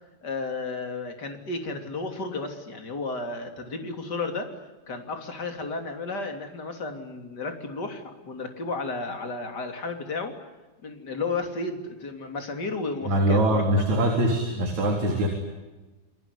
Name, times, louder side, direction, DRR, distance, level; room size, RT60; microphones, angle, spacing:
voice 1, 0.2-4.6 4.9-10.3 10.8-13.6, left 3 dB, 25° left, 5 dB, 3.0 m, -33 dB
voice 2, 13.0-15.3, right 1 dB, 40° right, 1 dB, 4.8 m, -23 dB
28.0 x 21.5 x 9.8 m, 1.2 s
omnidirectional pair, 5.1 m